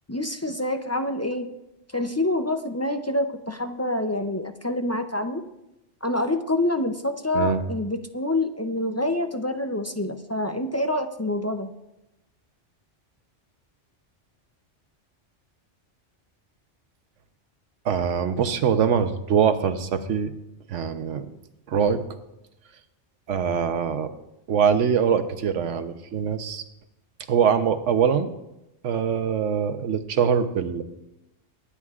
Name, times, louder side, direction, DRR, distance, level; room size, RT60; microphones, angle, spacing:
voice 1, 0.1-1.5 1.9-5.4 6.0-11.7, left 1 dB, 25° left, 6 dB, 0.3 m, -26 dB
voice 2, 17.8-20.3 20.7-21.3 21.7-22.0 23.3-24.1 24.5-26.6 27.3-28.3 28.8-30.8, right 7 dB, 80° right, 9 dB, 1.2 m, -23 dB
24.5 x 9.9 x 2.4 m, 0.92 s
omnidirectional pair, 1.2 m